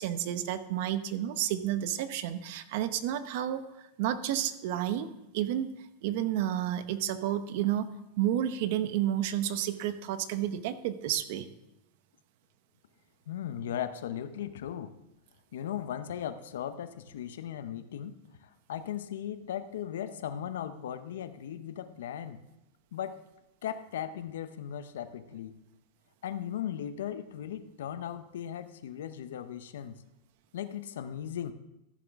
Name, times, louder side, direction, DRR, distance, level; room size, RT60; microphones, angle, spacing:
voice 1, 0.0-3.6 4.0-5.1 5.3-5.7 6.0-7.9 8.2-11.5, right 11 dB, 60° right, 12 dB, 0.8 m, -30 dB
voice 2, 13.3-14.9 15.5-18.2 18.7-22.4 22.9-23.2 23.6-25.6 26.2-30.0 30.5-31.5, left 10 dB, 85° left, 11 dB, 0.7 m, -37 dB
14.0 x 7.2 x 3.5 m, 0.90 s
supercardioid pair, 140°, 0 cm